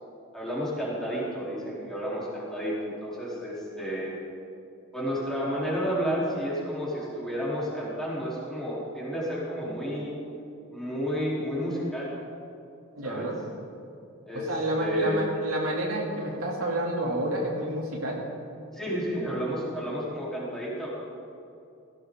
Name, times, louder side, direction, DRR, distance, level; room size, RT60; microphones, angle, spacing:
voice 1, 0.3-4.2 4.9-10.1 10.7-12.1 13.0-13.3 14.3-14.5 14.8-15.2 18.7-20.9, equal, ahead, -7 dB, 3.9 m, -31 dB
voice 2, 12.9-13.4 14.5-18.2, right 1 dB, 85° right, -2 dB, 3.0 m, -29 dB
17.5 x 16.0 x 3.9 m, 2.6 s
head